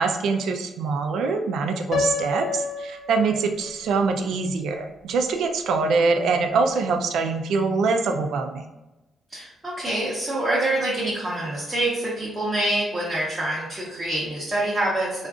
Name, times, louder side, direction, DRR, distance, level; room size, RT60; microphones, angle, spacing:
voice 1, 0.0-8.6, right 4 dB, 70° right, 5 dB, 0.3 m, -24 dB
Piano, 1.9-3.9, left 4 dB, 50° left, 0.4 m, -28 dB
voice 2, 9.3-15.3, right 1 dB, 10° right, -7 dB, 0.6 m, -26 dB
3.6 x 2.4 x 2.4 m, 1.0 s
cardioid pair, 170°, 0 cm